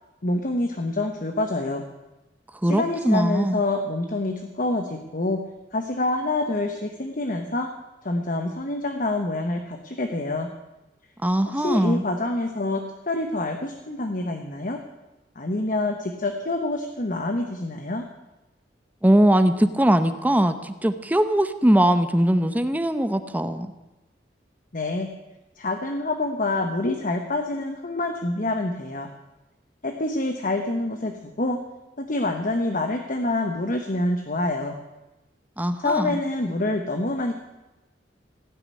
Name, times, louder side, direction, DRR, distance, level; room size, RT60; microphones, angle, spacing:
voice 1, 0.2-1.8 2.7-5.4 5.7-7.7 8.0-10.5 11.5-14.8 15.3-18.1 24.7-25.1 25.6-29.1 29.8-31.6 32.0-34.8 35.8-37.3, left 2 dB, 50° left, 5 dB, 1.1 m, -26 dB
voice 2, 2.6-3.6 11.2-12.0 19.0-23.7 35.6-36.2, right 1 dB, 10° right, 10 dB, 0.7 m, -21 dB
16.5 x 6.8 x 9.8 m, 1.0 s
head